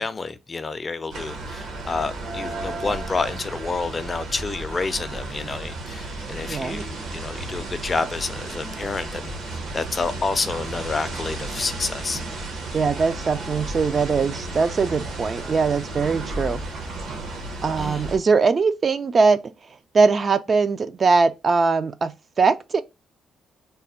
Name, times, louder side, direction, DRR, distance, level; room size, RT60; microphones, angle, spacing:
voice 1, 0.0-12.2 17.8-18.0, left 4 dB, 30° left, 0.4 m, -29 dB
sound 1, 1.1-18.2, right 2 dB, 75° right, 1.1 m, -33 dB
voice 2, 6.5-6.8 12.7-16.6 17.6-19.4 19.9-22.8, right 4 dB, 40° right, 0.3 m, -21 dB
3.3 x 2.2 x 4.1 m
cardioid pair, 90°, 0 cm